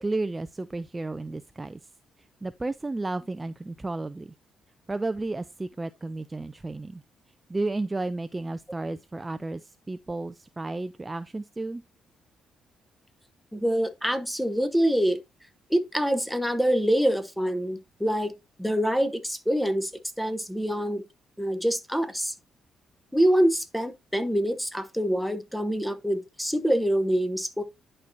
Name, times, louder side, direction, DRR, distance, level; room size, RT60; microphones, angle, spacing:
voice 1, 0.0-1.9 2.2-4.3 4.9-7.0 7.5-11.8, right 2 dB, 20° right, 0.3 m, -32 dB
voice 2, 13.5-15.2 15.7-18.3 18.6-19.9 20.2-21.0 21.4-22.3 23.1-27.6, equal, ahead, 0.9 m, -25 dB
10.5 x 4.3 x 2.6 m
cardioid pair, 90°, 0 cm